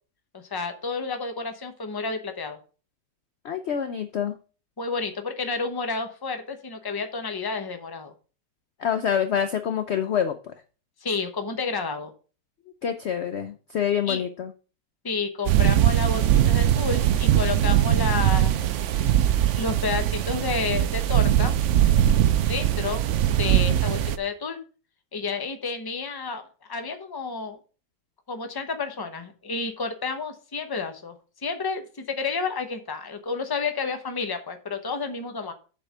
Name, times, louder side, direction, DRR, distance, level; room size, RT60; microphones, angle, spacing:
voice 1, 0.3-2.6 4.8-8.1 11.0-12.1 14.1-14.2 15.0-19.2 19.6-21.5 22.5-23.1 23.4-24.6 25.1-26.4 26.7-27.6 28.3-31.1 31.4-35.5, left 4 dB, 20° left, 7 dB, 0.6 m, -30 dB
voice 2, 3.4-4.4 8.8-10.5 12.8-14.5, left 8 dB, 70° left, 9 dB, 0.6 m, -26 dB
sound 1, 15.5-24.2, right 11 dB, 75° right, 0.7 m, -21 dB
7.5 x 4.3 x 6.6 m, 0.37 s
omnidirectional pair, 1.9 m